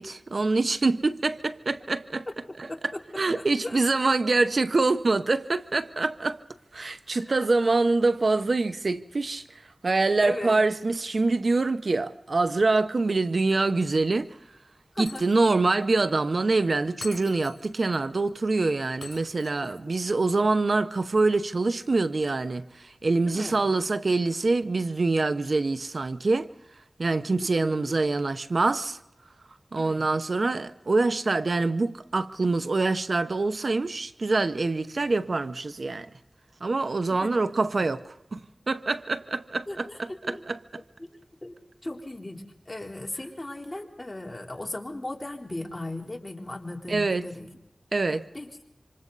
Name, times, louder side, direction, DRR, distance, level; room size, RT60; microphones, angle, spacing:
voice 1, 0.0-2.3 2.6-6.4 6.7-14.6 15.0-26.5 27.0-29.0 29.7-36.1 36.6-38.4 38.7-40.8 46.9-47.3 47.9-48.3, right 3 dB, 70° right, 0.8 m, -25 dB
voice 2, 2.7-3.0 3.4-3.8 7.2-7.5 10.2-10.6 14.9-15.2 19.6-19.7 23.3-23.6 29.8-30.0 37.1-37.3 39.7-40.4 41.0-41.1 41.4-41.6 41.8-47.5 48.1-48.5, left 1 dB, 30° left, 3.8 m, -37 dB
Shatter, 15.1-15.7 16.0-16.1 17.0-18.0 19.0-20.0, left 3 dB, 80° left, 5.6 m, -44 dB
28.0 x 26.5 x 4.0 m
wide cardioid pair, 55°, 0 cm